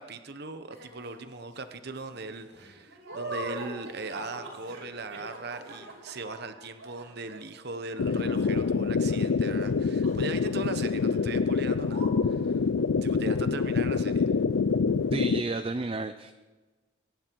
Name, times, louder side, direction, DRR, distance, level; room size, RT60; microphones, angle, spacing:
voice 1, 0.0-12.5 13.0-14.3, right 3 dB, 50° right, 9 dB, 1.0 m, -39 dB
sound 1, 0.7-1.3 1.7-9.8 10.0-10.7 10.9-11.2 11.5-11.6 11.8-12.1, right 1 dB, 80° right, 6.1 m, -43 dB
sound 2, 8.0-15.4, left 5 dB, 70° left, 0.4 m, -26 dB
voice 2, 15.1-16.3, right 3 dB, 25° right, 9 dB, 0.5 m, -31 dB
24.0 x 11.5 x 4.7 m, 1.3 s
head